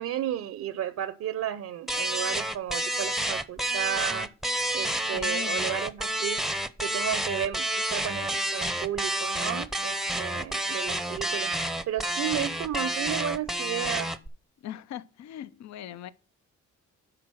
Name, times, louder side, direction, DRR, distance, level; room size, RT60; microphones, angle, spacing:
voice 1, 0.0-4.3 4.7-6.4 6.8-7.7 7.9-11.5 11.9-14.1, right 11 dB, 65° right, 0.6 m, -33 dB
sound 1, 1.9-14.3, right 1 dB, ahead, 0.6 m, -29 dB
voice 2, 5.1-5.7 14.6-16.1, left 11 dB, 65° left, 0.6 m, -40 dB
9.8 x 3.9 x 6.1 m
cardioid pair, 90°, 30 cm